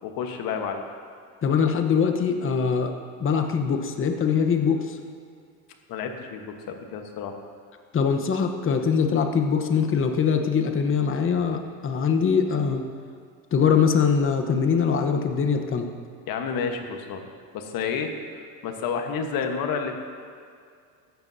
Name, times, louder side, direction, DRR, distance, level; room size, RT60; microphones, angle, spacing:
voice 1, 0.0-0.8 5.9-7.4 16.3-17.3 17.5-18.1 18.6-19.9, left 6 dB, 55° left, 5 dB, 1.4 m, -30 dB
voice 2, 1.4-2.9 3.2-5.0 7.9-12.8 13.5-15.9, left 6 dB, 30° left, 5 dB, 1.1 m, -22 dB
14.5 x 11.5 x 2.8 m, 2.2 s
supercardioid pair, 90°, 42 cm